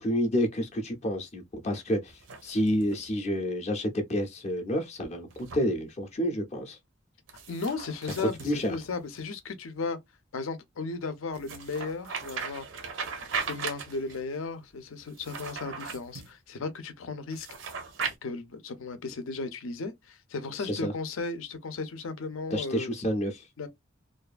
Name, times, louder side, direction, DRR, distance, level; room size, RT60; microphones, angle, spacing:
voice 1, 0.0-6.8 8.2-8.8 20.6-20.9 22.5-23.5, equal, 35° left, 0.5 m, -29 dB
sound 1, 2.1-3.1 5.3-5.6 7.3-9.2 11.3-14.2 15.1-16.3 17.3-18.1, right 5 dB, 70° right, 0.6 m, -38 dB
voice 2, 7.5-10.0 10.3-12.7 13.2-17.5 18.0-22.9 23.6-23.7, left 4 dB, 85° left, 0.6 m, -35 dB
2.5 x 2.3 x 2.4 m
head